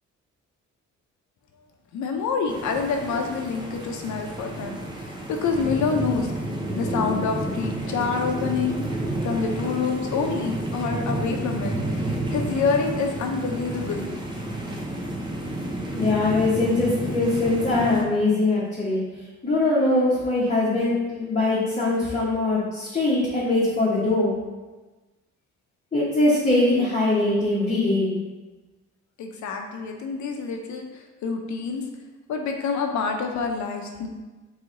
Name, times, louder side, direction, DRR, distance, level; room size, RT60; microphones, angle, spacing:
voice 1, 1.9-8.8 9.2-14.1 29.2-31.8 32.3-34.1, left 5 dB, 70° left, 3 dB, 0.7 m, -27 dB
sound 1, 2.5-18.0, right 1 dB, 15° right, 0.7 m, -30 dB
voice 2, 15.9-19.0 19.4-24.3 25.9-28.2, left 2 dB, 25° left, -8 dB, 1.0 m, -22 dB
3.2 x 3.0 x 3.7 m, 1.2 s
cardioid pair, 90°, 30 cm